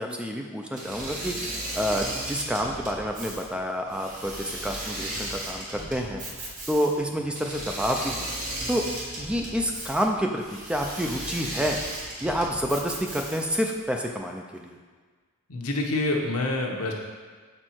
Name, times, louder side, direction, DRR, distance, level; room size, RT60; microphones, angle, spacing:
voice 1, 0.0-1.3 1.8-6.2 6.7-8.3 8.7-8.8 9.2-11.8 12.2-14.8, equal, 5° right, 2 dB, 0.3 m, -28 dB
Engine / Mechanisms, 0.7-13.6, right 1 dB, 35° right, 1.2 m, -36 dB
voice 2, 15.5-16.9, left 2 dB, 80° left, 0 dB, 0.9 m, -27 dB
6.2 x 4.5 x 4.4 m, 1.5 s
head